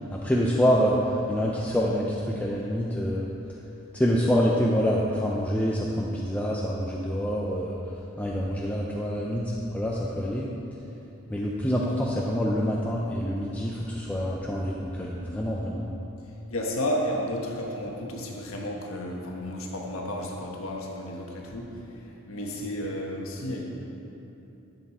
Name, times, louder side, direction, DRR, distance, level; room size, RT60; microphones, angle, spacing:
voice 1, 0.1-3.3 3.9-10.5 11.3-15.9, equal, 5° left, -3 dB, 0.6 m, -26 dB
voice 2, 16.5-21.8 22.3-23.6, left 1 dB, 75° left, -1 dB, 1.3 m, -32 dB
12.0 x 8.1 x 4.3 m, 2.9 s
head